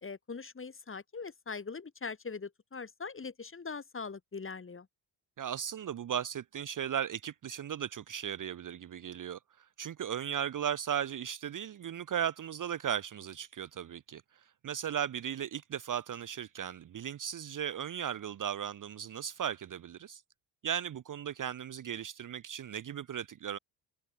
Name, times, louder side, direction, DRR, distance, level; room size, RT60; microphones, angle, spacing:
voice 1, 0.0-4.9, left 4 dB, 25° left, 2.2 m, -41 dB
voice 2, 5.4-9.4 9.8-14.2 14.6-20.2 20.6-23.6, right 9 dB, 40° right, 0.8 m, -36 dB
cardioid pair, 80°, 47 cm